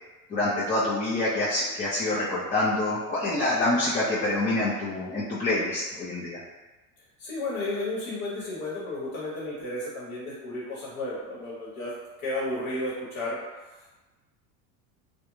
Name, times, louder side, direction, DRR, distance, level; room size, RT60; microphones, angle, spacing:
voice 1, 0.3-6.4, left 2 dB, 20° left, -9 dB, 0.5 m, -26 dB
voice 2, 7.2-11.9 12.2-13.4 13.7-13.9, left 2 dB, 55° left, -6 dB, 1.1 m, -33 dB
2.4 x 2.2 x 3.1 m, 1.2 s
hypercardioid pair, 95°, 42 cm